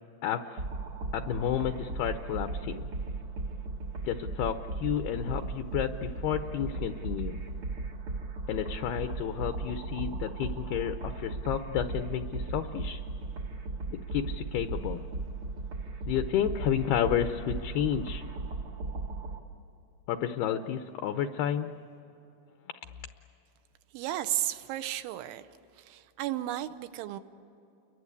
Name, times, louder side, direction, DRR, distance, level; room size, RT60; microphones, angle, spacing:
voice 1, 0.2-0.6 1.1-2.9 4.0-7.4 8.5-13.0 13.9-15.0 16.1-18.2 20.1-21.7, left 10 dB, 80° left, 8 dB, 2.3 m, -31 dB
sound 1, 0.6-19.4, right 3 dB, 75° right, 1.1 m, -37 dB
voice 2, 23.9-25.5 25.8-27.2, right 13 dB, 90° right, 10 dB, 3.3 m, -33 dB
29.5 x 23.0 x 8.3 m, 2.9 s
omnidirectional pair, 5.3 m